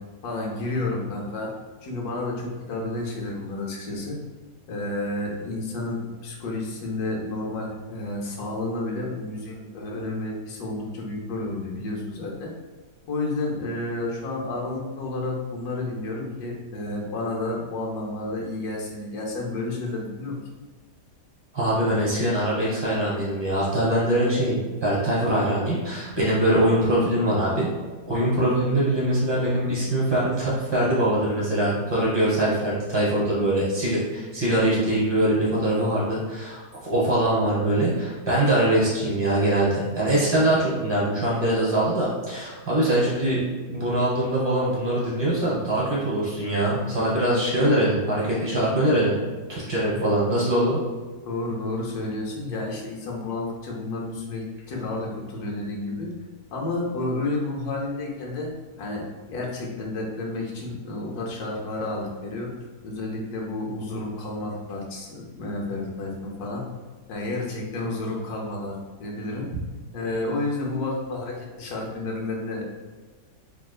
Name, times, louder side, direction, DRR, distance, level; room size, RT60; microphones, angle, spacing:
voice 1, 0.2-1.5 1.8-4.2 4.7-12.5 13.1-20.4 49.9-50.0 51.3-56.1 56.5-58.5 58.8-62.5 62.8-66.7 67.1-69.5 69.9-72.6, left 2 dB, 70° left, -2 dB, 1.2 m, -31 dB
voice 2, 21.5-27.7 28.1-43.4 43.7-49.1 49.5-50.8, right 1 dB, 20° right, -7 dB, 0.9 m, -23 dB
3.5 x 2.7 x 2.3 m, 1.4 s
omnidirectional pair, 1.8 m